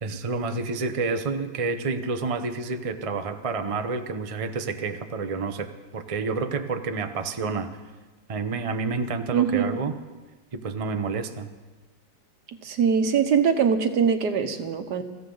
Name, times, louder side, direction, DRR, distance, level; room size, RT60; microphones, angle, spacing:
voice 1, 0.0-7.7 8.3-10.0 10.5-11.5, right 4 dB, 35° right, 7 dB, 0.5 m, -29 dB
voice 2, 9.3-9.8 12.6-15.0, right 6 dB, 65° right, 8 dB, 1.6 m, -22 dB
24.0 x 15.0 x 3.9 m, 1.3 s
omnidirectional pair, 1.9 m